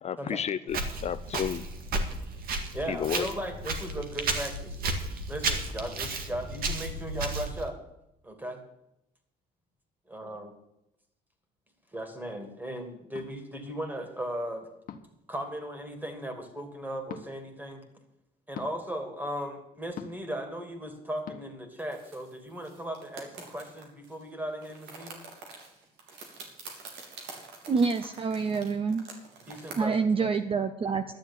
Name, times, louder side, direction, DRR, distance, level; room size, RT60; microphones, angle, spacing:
voice 1, 0.0-1.6 2.9-3.3, left 9 dB, 40° left, 13 dB, 0.5 m, -32 dB
Walk footsteps, 0.7-7.7, right 3 dB, 60° right, 2.0 m, -33 dB
voice 2, 2.7-4.8 5.3-7.8 8.2-8.6 10.1-10.5 11.9-14.7 15.3-17.8 18.5-25.2 29.5-30.3, equal, 10° right, 6 dB, 2.7 m, -37 dB
sound 1, 13.1-13.3 14.9-15.2 17.1-17.3 18.5-18.7 20.0-20.3 21.3-21.4, left 7 dB, 55° left, 1.4 m, -41 dB
sound 2, 21.8-24.2 24.5-29.7, right 4 dB, 85° right, 3.3 m, -47 dB
voice 3, 27.7-29.0 29.8-31.0, right 5 dB, 35° right, 9 dB, 0.8 m, -27 dB
12.0 x 7.2 x 9.0 m, 0.84 s
cardioid pair, 110°, 17 cm